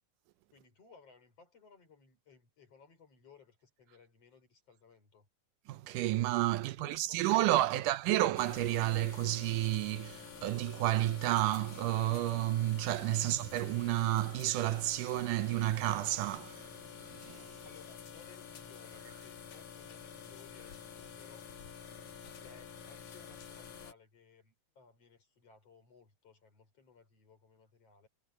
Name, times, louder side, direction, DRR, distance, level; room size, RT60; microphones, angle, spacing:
voice 1, 0.5-5.3 6.6-7.9 13.2-13.3 17.6-21.5 22.4-28.1, left 5 dB, 50° left, 6.1 m, -60 dB
voice 2, 5.7-16.7 17.1-17.5, right 15 dB, 85° right, 2.3 m, -31 dB
sound 1, 8.4-23.9, left 7 dB, 70° left, 3.5 m, -49 dB
omnidirectional pair, 3.7 m